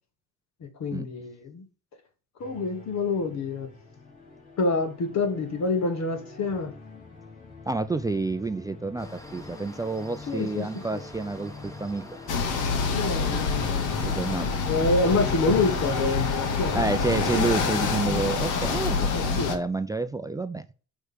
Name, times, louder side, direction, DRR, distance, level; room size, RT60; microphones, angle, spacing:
voice 1, 0.6-1.7 2.4-3.7 4.6-6.7 10.3-10.7 10.9-11.0 12.9-14.3 14.6-16.8 18.9-19.6, left 3 dB, 60° left, 1.4 m, -27 dB
sound 1, 2.4-18.4, left 3 dB, 30° left, 3.0 m, -46 dB
voice 2, 7.7-12.1 13.1-13.5 14.0-14.6 16.7-20.7, right 3 dB, 10° right, 0.4 m, -29 dB
sound 2, 9.0-19.0, left 1 dB, 10° left, 1.1 m, -46 dB
sound 3, 12.3-19.5, left 5 dB, 85° left, 1.1 m, -26 dB
6.4 x 3.2 x 5.0 m
cardioid pair, 90°, 30 cm